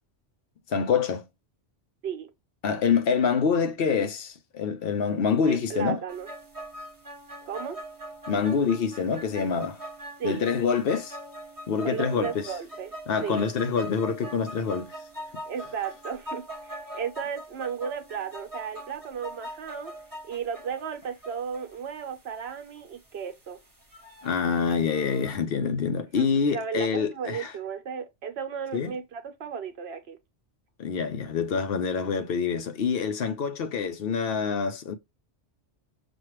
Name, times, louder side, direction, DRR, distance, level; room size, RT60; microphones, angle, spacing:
voice 1, 0.7-1.2 2.6-6.0 8.3-9.8 10.2-11.2 11.7-12.5 13.1-15.0 24.2-27.5 28.7-28.9 30.8-34.9, left 6 dB, 60° left, 0.8 m, -26 dB
voice 2, 5.5-6.3 7.4-7.8 10.2-10.5 11.8-12.9 13.2-13.5 15.5-19.9 20.2-23.6 26.2-30.2, right 7 dB, 65° right, 1.1 m, -34 dB
sound 1, 6.1-25.3, equal, 20° right, 1.2 m, -42 dB
6.1 x 2.4 x 3.0 m
omnidirectional pair, 1.2 m